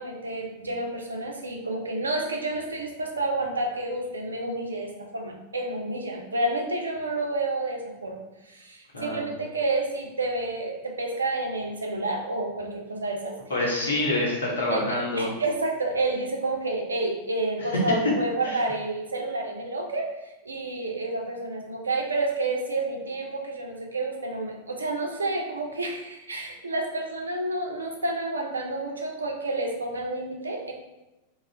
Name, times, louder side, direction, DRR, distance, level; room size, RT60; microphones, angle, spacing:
voice 1, 0.0-8.2 8.4-13.3 14.7-30.7, right 2 dB, 75° right, 1 dB, 0.4 m, -30 dB
voice 2, 8.9-9.3 13.5-15.3 18.4-18.6, left 2 dB, 70° left, -3 dB, 0.7 m, -27 dB
2.4 x 2.0 x 3.3 m, 1.0 s
figure-of-eight pair, 90°, 0 cm